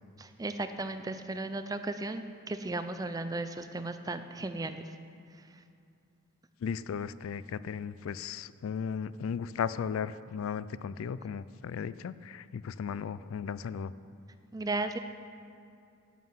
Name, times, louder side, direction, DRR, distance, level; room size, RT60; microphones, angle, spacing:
voice 1, 0.2-4.9 5.5-5.6 14.5-15.0, right 2 dB, 15° right, 9 dB, 0.4 m, -35 dB
voice 2, 6.6-13.9, left 7 dB, 75° left, 16 dB, 0.3 m, -36 dB
11.0 x 7.4 x 5.6 m, 2.5 s
head